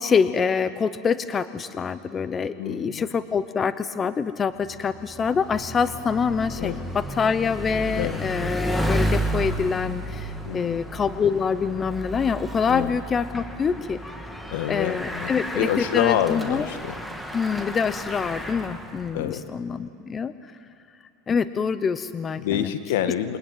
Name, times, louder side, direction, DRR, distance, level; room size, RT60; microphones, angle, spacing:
voice 1, 0.0-14.0 14.7-16.7 17.3-20.3 21.3-22.7, left 6 dB, 20° left, 13 dB, 0.8 m, -25 dB
voice 2, 2.6-3.1 6.6-6.9 7.9-8.2 10.4-10.8 12.7-13.0 14.5-17.0 19.1-19.4 22.4-23.4, left 10 dB, 80° left, 10 dB, 1.7 m, -27 dB
Bicycle, 4.6-19.2, right 1 dB, 5° left, 1.9 m, -32 dB
28.0 x 22.5 x 9.2 m, 2.4 s
supercardioid pair, 135°, 0 cm